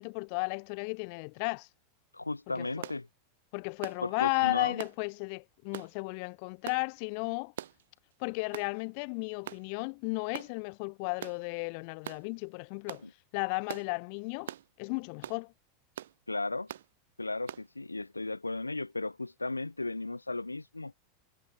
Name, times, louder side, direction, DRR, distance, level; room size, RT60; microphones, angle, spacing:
voice 1, 0.0-1.7 2.6-2.9 3.5-7.5 8.2-13.0 13.3-14.5 14.8-15.5, left 37 dB, 50° left, 1.7 m, -34 dB
voice 2, 2.1-3.1 4.0-4.8 13.0-13.1 16.3-16.7 17.2-20.9, left 2 dB, 90° left, 1.5 m, -35 dB
sound 1, 2.8-3.0 3.8-4.0 4.8-5.0 5.7-5.9 6.7-6.8 7.6-7.8 8.5-8.7 9.5-9.7 10.3-10.5 11.2-11.4 12.0-12.2 12.9-13.1 13.7-13.9 14.5-14.7 15.2-15.4 16.0-16.2 16.7-16.9 17.5-17.7, right 11 dB, 65° right, 0.7 m, -42 dB
figure-of-eight pair, 85°, 0 cm